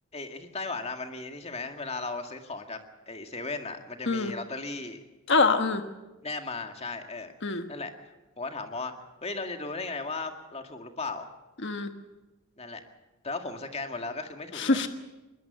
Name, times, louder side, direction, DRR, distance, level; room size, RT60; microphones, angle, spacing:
voice 1, 0.1-2.8 3.1-5.0 6.2-7.3 7.7-7.9 8.4-8.9 9.2-11.3 12.6-12.8 13.2-14.8, left 3 dB, 30° left, 5 dB, 2.0 m, -36 dB
voice 2, 5.3-5.8 7.4-7.6 11.6-11.9 14.5-14.9, left 3 dB, 60° left, 7 dB, 1.4 m, -24 dB
22.5 x 20.0 x 6.8 m, 1.1 s
head